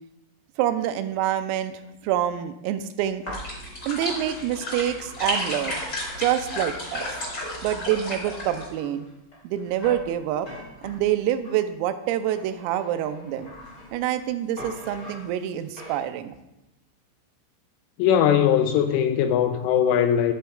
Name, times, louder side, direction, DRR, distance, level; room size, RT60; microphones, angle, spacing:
voice 1, 0.6-1.7 2.0-3.3 3.9-5.8 6.2-7.1 7.6-9.1 9.4-10.5 10.8-13.5 13.9-16.3, right 11 dB, 90° right, 3.3 m, -26 dB
sound 1, 3.0-5.6 6.1-6.2 6.4-11.6 12.2-14.3 14.6-16.0, left 1 dB, 40° left, 1.1 m, -42 dB
sound 2, 3.3-8.7, left 1 dB, 25° left, 3.9 m, -32 dB
voice 2, 18.0-20.3, left 9 dB, 85° left, 2.9 m, -20 dB
13.0 x 11.0 x 2.3 m
omnidirectional pair, 6.0 m